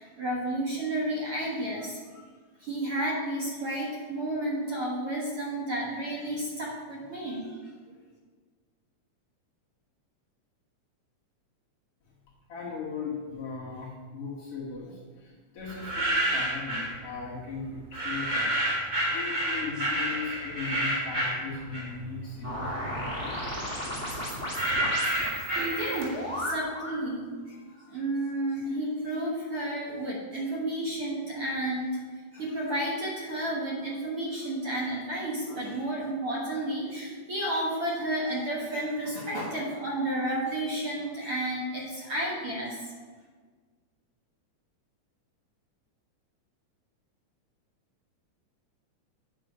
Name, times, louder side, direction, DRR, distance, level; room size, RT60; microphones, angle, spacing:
voice 1, 0.0-2.0 2.6-7.5 25.5-26.1 26.5-27.6 27.9-32.0 32.3-42.8, right 1 dB, 50° right, -5 dB, 2.0 m, -31 dB
voice 2, 12.5-15.3 15.5-23.4, left 4 dB, 55° left, -6 dB, 2.1 m, -38 dB
sound 1, 15.7-16.9 17.9-22.1 22.5-26.2, right 1 dB, 35° right, 3.2 m, -29 dB
sound 2, 22.4-27.0, equal, 5° right, 1.8 m, -35 dB
9.3 x 6.1 x 4.7 m, 1.5 s
omnidirectional pair, 3.6 m